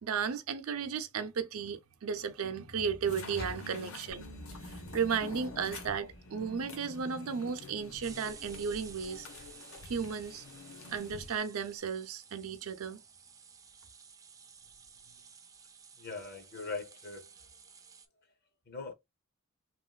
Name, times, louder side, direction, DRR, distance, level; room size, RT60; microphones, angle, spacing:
voice 1, 0.0-4.2 4.7-9.3 9.9-10.4 10.9-13.0, right 6 dB, 85° right, 0.5 m, -34 dB
sound 1, 3.0-11.4, left 3 dB, 85° left, 0.9 m, -48 dB
sound 2, 3.2-3.7 4.0-4.3 4.5-5.1 5.5-5.6 5.8-6.1 7.0-7.1 8.0-18.1, right 6 dB, 15° right, 0.4 m, -54 dB
Alarm, 4.1-11.8, left 1 dB, 65° left, 1.5 m, -57 dB
voice 2, 16.0-17.3 18.7-18.9, left 3 dB, 45° left, 0.8 m, -40 dB
3.0 x 2.9 x 2.2 m
head